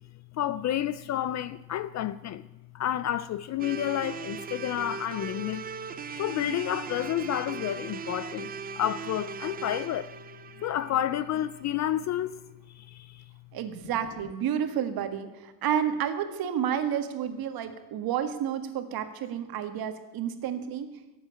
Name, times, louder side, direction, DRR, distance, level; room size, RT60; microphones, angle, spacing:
voice 1, 0.3-2.4 2.7-5.7 6.1-10.1 10.6-12.4 12.7-13.2, left 11 dB, 40° left, 0.4 m, -30 dB
sound 1, 3.6-11.7, right 6 dB, 20° right, 0.4 m, -39 dB
voice 2, 13.5-20.9, right 9 dB, 50° right, 1.7 m, -30 dB
17.5 x 8.0 x 8.6 m
cardioid pair, 170°, 46 cm